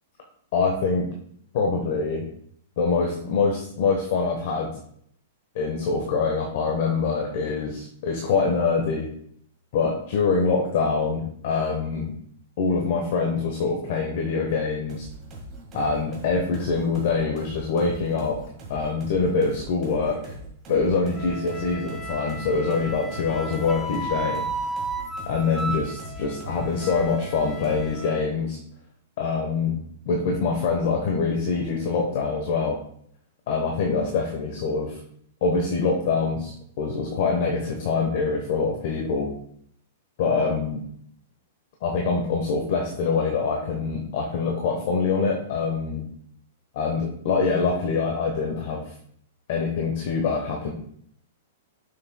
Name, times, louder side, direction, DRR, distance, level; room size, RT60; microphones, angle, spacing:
voice 1, 0.5-1.1 1.5-2.3 2.8-4.7 5.5-9.1 9.7-12.1 12.6-15.1 15.7-18.4 18.7-20.4 20.7-24.4 25.3-28.6 29.2-29.8 30.1-32.8 33.5-35.0 35.4-39.3 40.2-40.8 41.8-46.1 46.7-48.9 49.5-50.7, left 4 dB, 45° left, 1 dB, 1.0 m, -24 dB
sound 1, 14.9-28.0, right 1 dB, 20° right, 1.6 m, -42 dB
Wind instrument woodwind instrument, 21.1-28.2, right 2 dB, 5° left, 0.5 m, -34 dB
11.5 x 6.4 x 2.2 m, 0.67 s
supercardioid pair, 175°, 0 cm